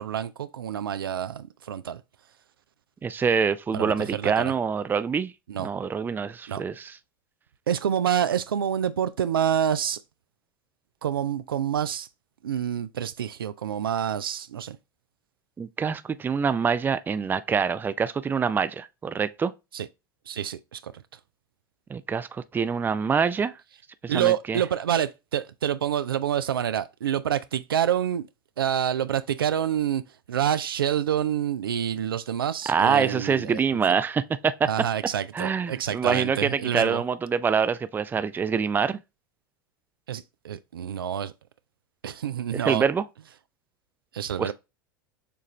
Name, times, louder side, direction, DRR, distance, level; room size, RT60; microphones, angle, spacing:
voice 1, 0.0-2.0 3.7-4.5 5.5-5.7 6.5-6.6 7.7-10.0 11.0-12.1 12.4-14.8 19.7-19.9 20.3-20.9 24.1-28.3 28.6-30.0 30.3-33.8 34.7-37.0 40.1-41.3 42.0-42.8 44.1-44.5, right 9 dB, 90° right, 0.4 m, -27 dB
voice 2, 3.0-5.3 5.6-7.0 15.6-19.5 21.9-23.5 24.0-24.6 32.7-34.7 35.3-39.0 42.5-43.0 44.4-44.5, right 6 dB, 15° right, 0.4 m, -25 dB
6.8 x 2.5 x 3.1 m
hypercardioid pair, 90°, 12 cm